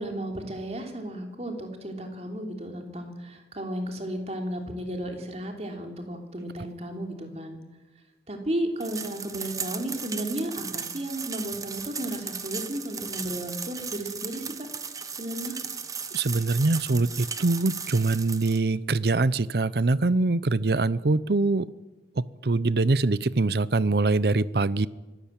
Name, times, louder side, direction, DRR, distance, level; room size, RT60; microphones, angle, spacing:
voice 1, 0.0-7.6 8.3-14.7 15.2-15.6, right 1 dB, 35° right, 3 dB, 3.3 m, -34 dB
sound 1, 8.8-18.6, right 6 dB, 20° right, 1.1 m, -36 dB
voice 2, 16.1-21.7 22.2-24.9, right 3 dB, 60° right, 19 dB, 0.7 m, -24 dB
25.0 x 14.0 x 8.9 m, 1.2 s
head